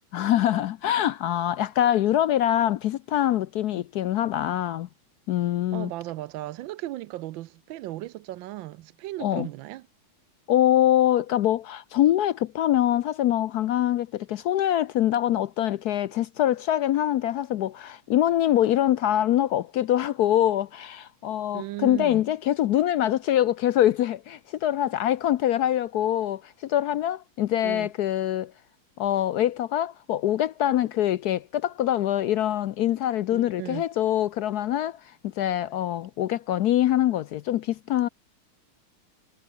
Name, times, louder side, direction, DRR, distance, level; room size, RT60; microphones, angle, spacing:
voice 1, 0.1-4.9 5.3-5.9 9.2-9.5 10.5-28.5 29.0-38.1, left 12 dB, 80° left, 0.9 m, -24 dB
voice 2, 5.7-9.9 21.5-22.2 27.6-27.9 33.3-33.8, right 15 dB, 75° right, 1.3 m, -36 dB
omnidirectional pair, 2.3 m